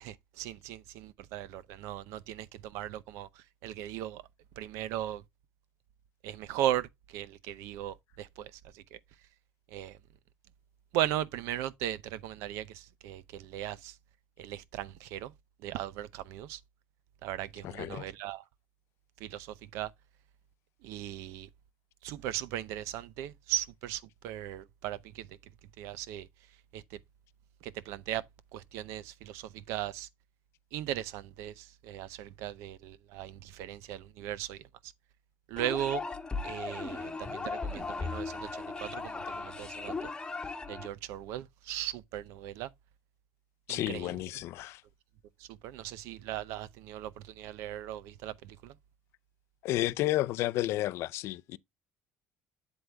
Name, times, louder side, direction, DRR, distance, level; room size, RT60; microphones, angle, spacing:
voice 1, 0.0-3.3 3.6-4.2 4.6-5.2 6.2-9.0 9.7-10.0 10.9-13.9 14.4-15.3 15.6-16.6 17.2-18.4 19.2-19.9 20.8-21.5 22.0-25.3 25.8-26.3 26.7-26.8 27.6-28.2 28.5-30.1 30.7-34.6 35.5-36.0 36.4-38.5 38.8-40.1 40.7-42.7 43.7-44.1 45.5-47.1 47.4-48.7, right 12 dB, 85° right, 0.6 m, -37 dB
voice 2, 17.6-18.1 43.7-44.8 49.6-51.6, left 16 dB, 70° left, 0.4 m, -31 dB
sound 1, 35.6-40.9, left 4 dB, 15° left, 1.1 m, -37 dB
7.9 x 7.9 x 2.2 m
cardioid pair, 125°, 5 cm